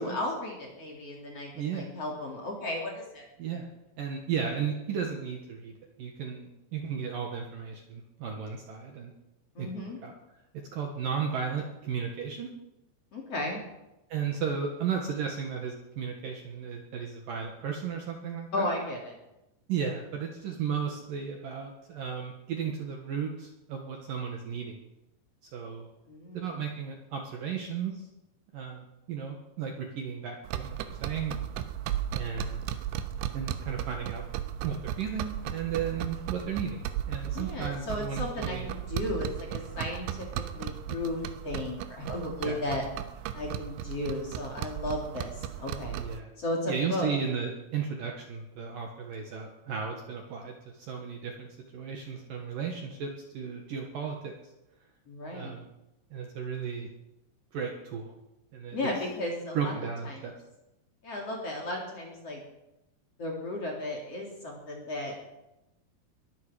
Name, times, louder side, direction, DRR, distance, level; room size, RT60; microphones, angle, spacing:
voice 1, 0.0-3.3 9.5-10.0 13.1-13.6 18.5-19.2 26.1-26.5 37.3-40.2 40.5-42.8 43.3-46.0 46.4-47.1 55.1-55.5 58.7-59.7 60.0-60.3 61.0-62.4 63.2-65.1, left 1 dB, 40° left, -1 dB, 2.9 m, -34 dB
voice 2, 1.6-1.9 3.4-3.7 4.0-5.7 6.0-9.1 9.6-10.1 10.7-12.5 14.1-18.7 19.7-24.8 25.5-25.9 26.3-27.9 28.5-31.3 32.1-32.7 33.3-34.2 34.6-38.7 42.4-42.6 46.0-46.3 46.7-51.5 51.7-54.3 55.3-55.7 56.1-56.9 57.5-58.1 58.5-58.8 59.5-60.3, right 7 dB, 60° right, 2 dB, 2.5 m, -34 dB
sound 1, 30.5-46.2, right 10 dB, 90° right, 3.3 m, -36 dB
21.5 x 13.0 x 5.0 m, 0.94 s
omnidirectional pair, 5.5 m